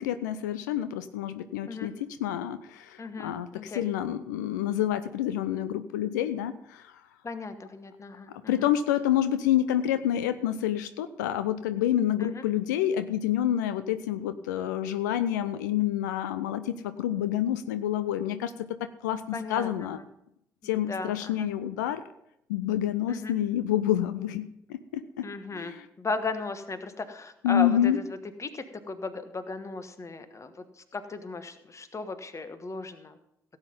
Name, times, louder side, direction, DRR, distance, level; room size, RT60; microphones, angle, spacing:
voice 1, 0.0-7.0 8.5-18.7 19.0-20.0 20.6-22.0 22.5-25.3 25.5-25.9 27.4-28.0, left 11 dB, 80° left, 13 dB, 0.5 m, -28 dB
voice 2, 3.0-3.8 7.2-8.7 12.2-12.4 19.3-20.0 20.6-21.5 23.1-23.3 25.2-28.0 28.4-33.2, left 3 dB, 30° left, 10 dB, 1.3 m, -36 dB
16.5 x 8.1 x 5.3 m, 0.80 s
figure-of-eight pair, 40°, 10 cm